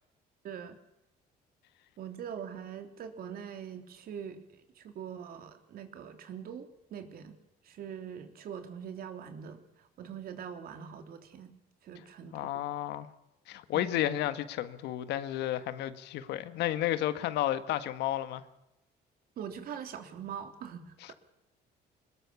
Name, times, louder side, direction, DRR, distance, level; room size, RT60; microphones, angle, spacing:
voice 1, 0.4-0.8 2.0-7.4 7.7-9.6 10.0-11.5 11.8-12.6 13.7-14.1 19.4-21.1, right 8 dB, 60° right, 3.3 m, -43 dB
voice 2, 12.3-13.1 13.5-18.4 21.0-21.1, left 13 dB, 80° left, 1.6 m, -32 dB
22.5 x 20.5 x 7.1 m
cardioid pair, 110°, 17 cm